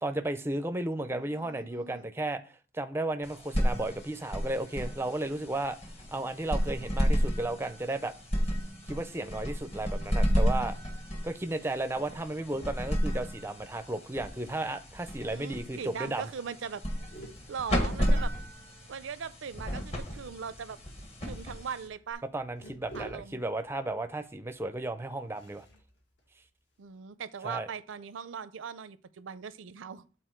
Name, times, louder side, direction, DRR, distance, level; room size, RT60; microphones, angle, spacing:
voice 1, 0.0-5.8 6.1-8.1 8.9-10.8 11.2-16.3 22.3-25.7 27.4-27.7, right 2 dB, 10° right, 0.4 m, -34 dB
voice 2, 1.1-2.1 15.3-16.8 17.5-18.3 18.9-20.8 21.2-22.2 22.9-23.4 26.8-30.1, right 6 dB, 85° right, 0.5 m, -40 dB
sound 1, 3.2-22.1, equal, 35° left, 1.3 m, -32 dB
sound 2, 17.0-19.0 20.1-27.0, right 1 dB, 65° left, 1.9 m, -53 dB
8.4 x 4.2 x 4.4 m
head